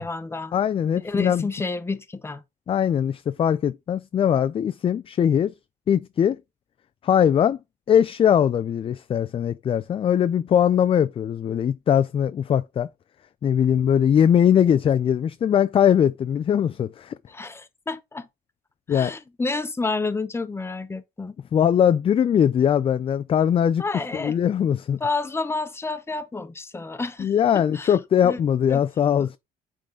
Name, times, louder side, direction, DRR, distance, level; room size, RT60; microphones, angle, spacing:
voice 1, 0.0-0.6 0.9-2.4 17.3-18.3 18.9-21.3 23.8-24.4 25.0-28.0 28.2-28.4 28.7-28.8 29.2-29.3, left 3 dB, 15° left, 0.9 m, -30 dB
voice 2, 0.5-1.4 2.7-5.5 5.9-6.4 7.0-7.6 7.9-12.9 13.4-17.2 18.9-19.1 21.5-23.8 24.1-25.0 27.2-29.4, left 9 dB, 35° left, 0.4 m, -21 dB
8.3 x 3.8 x 3.7 m
cardioid pair, 110°, 17 cm